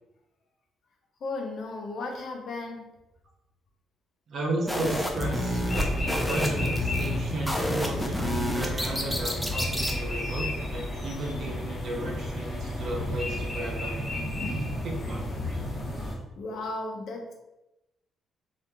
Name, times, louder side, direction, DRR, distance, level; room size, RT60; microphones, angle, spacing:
voice 1, 1.2-2.9 16.4-17.3, left 2 dB, 65° left, 2 dB, 0.5 m, -35 dB
voice 2, 4.3-13.9 14.8-15.3, right 2 dB, 60° right, -1 dB, 0.5 m, -34 dB
sound 1, 4.7-10.0, left 1 dB, 5° left, 0.4 m, -30 dB
sound 2, 5.2-16.1, left 1 dB, 35° left, 0.9 m, -32 dB
2.9 x 2.4 x 2.2 m, 0.94 s
cardioid pair, 90°, 0 cm